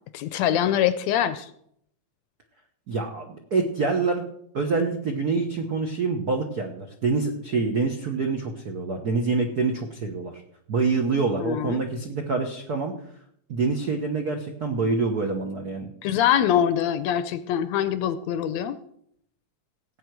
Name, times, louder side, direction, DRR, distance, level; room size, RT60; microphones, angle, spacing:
voice 1, 0.1-1.5 11.4-11.8 16.0-18.8, left 10 dB, 75° left, 13 dB, 1.7 m, -24 dB
voice 2, 2.9-4.3 4.5-10.4 10.7-12.9 13.5-15.9, right 4 dB, 85° right, 4 dB, 0.8 m, -26 dB
17.0 x 8.7 x 4.6 m, 0.70 s
omnidirectional pair, 3.5 m